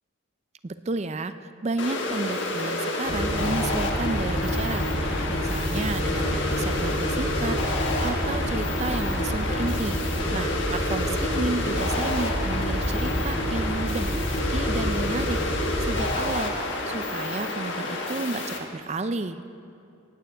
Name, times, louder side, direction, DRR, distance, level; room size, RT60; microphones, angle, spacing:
voice 1, 0.6-10.0 10.3-16.6 16.9-19.4, right 3 dB, 30° right, 11 dB, 0.4 m, -32 dB
sound 1, 1.8-18.6, left 2 dB, 55° left, 1.4 m, -30 dB
sound 2, 3.1-16.0, equal, 40° left, 3.3 m, -28 dB
18.0 x 16.5 x 3.4 m, 2.6 s
head